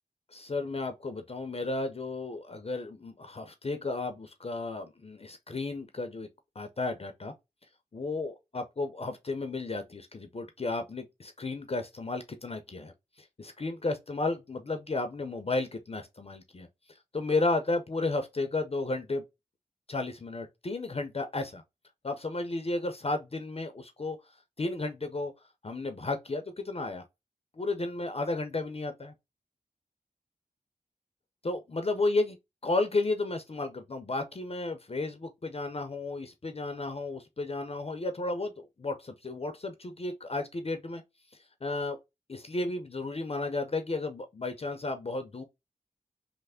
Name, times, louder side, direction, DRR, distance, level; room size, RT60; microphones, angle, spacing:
voice 1, 0.3-6.3 6.6-7.3 7.9-12.9 13.4-16.7 17.1-19.2 19.9-21.6 22.0-24.2 24.6-25.3 25.6-27.0 27.5-29.1 31.4-32.4 32.6-41.0 41.6-42.0 42.3-45.4, left 2 dB, 40° left, 0.5 m, -33 dB
3.2 x 2.0 x 3.4 m
cardioid pair, 50°, 16 cm